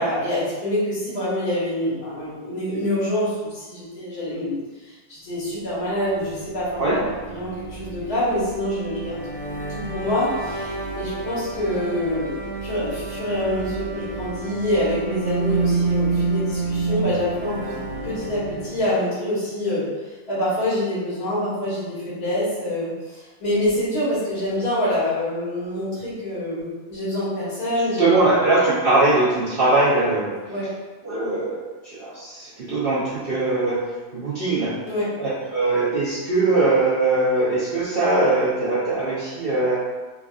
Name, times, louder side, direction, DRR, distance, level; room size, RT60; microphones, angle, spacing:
voice 1, 0.0-4.6 4.9-9.2 9.7-12.3 12.6-17.8 18.0-19.9 20.3-28.3 30.5-30.7 34.8-35.1, left 1 dB, 70° left, -9 dB, 1.8 m, -26 dB
sound 1, 6.0-19.0, right 3 dB, 55° left, 1.3 m, -29 dB
voice 2, 28.0-30.3 31.0-33.8 34.1-34.7 35.2-39.8, right 2 dB, 60° right, -10 dB, 0.6 m, -21 dB
4.3 x 2.3 x 2.3 m, 1.3 s
omnidirectional pair, 1.7 m